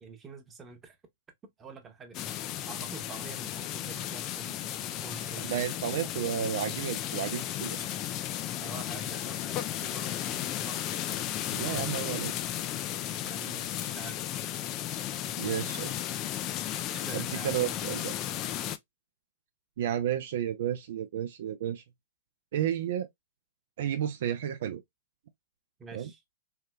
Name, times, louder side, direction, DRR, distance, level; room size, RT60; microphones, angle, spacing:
voice 1, 0.0-1.0 1.6-2.2 2.7-4.7 5.0-5.6 6.4-6.8 8.6-11.2 13.2-14.4 16.9-17.6 25.8-26.2, right 5 dB, 20° right, 0.9 m, -47 dB
sound 1, 2.1-18.8, left 12 dB, 35° left, 0.4 m, -34 dB
voice 2, 5.4-7.9 11.5-12.3 15.4-15.9 17.1-18.1 19.8-21.8 22.5-23.1 23.8-24.8 25.9-26.1, right 10 dB, 60° right, 0.4 m, -32 dB
3.3 x 2.7 x 2.2 m
hypercardioid pair, 110°, 0 cm